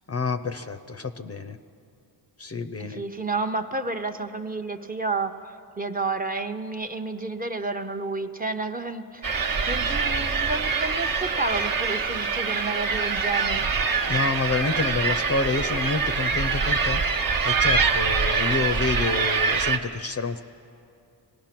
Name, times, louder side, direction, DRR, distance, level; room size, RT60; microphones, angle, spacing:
voice 1, 0.1-1.6 2.4-3.0 14.1-17.0 17.4-20.4, left 4 dB, 35° left, 9 dB, 0.6 m, -28 dB
voice 2, 2.8-5.4 5.8-13.7, right 3 dB, 20° right, 5 dB, 0.7 m, -30 dB
sound 1, 9.2-19.8, right 4 dB, 50° right, 1.1 m, -24 dB
25.5 x 17.5 x 6.0 m, 2.5 s
wide cardioid pair, 105°, 44 cm